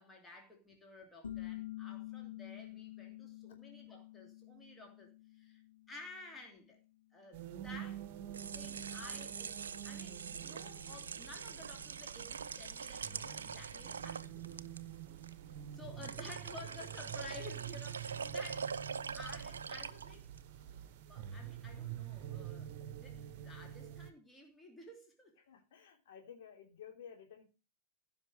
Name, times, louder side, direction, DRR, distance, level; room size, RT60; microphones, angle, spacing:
voice 1, 0.0-5.6 5.9-6.8 7.1-8.1 8.5-9.6 9.8-14.6 15.7-18.7 19.1-20.3 20.7-20.8 21.1-25.3, left 2 dB, 15° left, 2.9 m, -53 dB
sound 1, 1.2-6.6, left 14 dB, 70° left, 1.2 m, -48 dB
sound 2, 7.3-24.1, right 11 dB, 45° right, 1.1 m, -47 dB
sound 3, 8.1-20.5, right 6 dB, 70° right, 0.4 m, -44 dB
voice 2, 25.4-27.4, left 8 dB, 55° left, 3.0 m, -54 dB
15.5 x 5.8 x 4.7 m
figure-of-eight pair, 90°, 0 cm